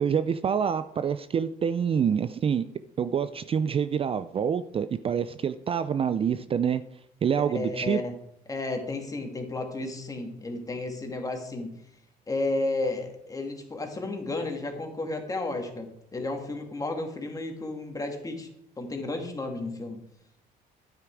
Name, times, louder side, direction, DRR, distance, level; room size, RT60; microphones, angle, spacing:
voice 1, 0.0-2.6 3.0-6.8 7.2-8.0, right 7 dB, 35° right, 12 dB, 0.5 m, -26 dB
voice 2, 7.4-8.1 8.5-11.8 12.3-18.5 18.8-20.0, left 2 dB, 20° left, 3 dB, 2.4 m, -32 dB
11.5 x 9.3 x 4.7 m, 0.73 s
cardioid pair, 110°, 17 cm